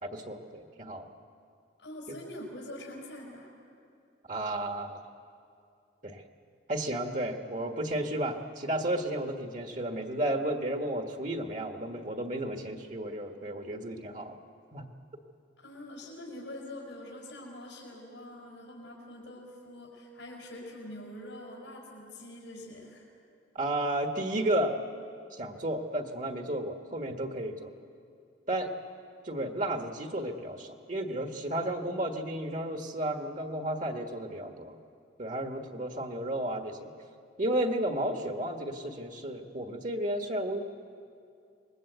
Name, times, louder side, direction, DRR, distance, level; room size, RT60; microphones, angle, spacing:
voice 1, 0.0-1.1 2.1-2.2 4.3-5.0 6.0-6.2 6.7-14.3 14.7-14.9 23.5-24.7 25.3-27.7 28.5-28.7 29.2-34.8 35.2-36.9 37.4-40.6, right 1 dB, 40° right, 4 dB, 1.5 m, -33 dB
voice 2, 1.8-3.5 15.6-23.1, left 1 dB, 90° left, -2 dB, 5.3 m, -44 dB
27.0 x 21.0 x 8.1 m, 2.5 s
head